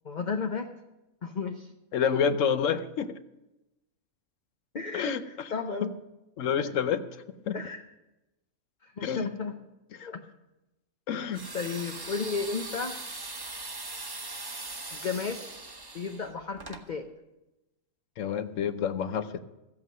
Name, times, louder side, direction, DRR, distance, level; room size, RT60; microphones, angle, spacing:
voice 1, 0.0-0.7 1.2-1.7 2.1-2.2 4.7-5.9 6.6-6.7 7.5-7.8 8.8-9.6 10.0-10.2 11.5-13.0 14.9-15.4 15.9-17.1, left 5 dB, 45° left, 4 dB, 0.7 m, -33 dB
voice 2, 1.9-3.1 4.9-5.2 6.4-7.0 7.5-7.6 9.0-9.3 10.0-10.1 11.1-11.4 18.2-19.4, left 7 dB, 65° left, 11 dB, 1.0 m, -28 dB
sound 1, 11.3-16.8, right 2 dB, 20° right, 0.7 m, -40 dB
14.5 x 8.4 x 6.4 m, 0.97 s
omnidirectional pair, 1.5 m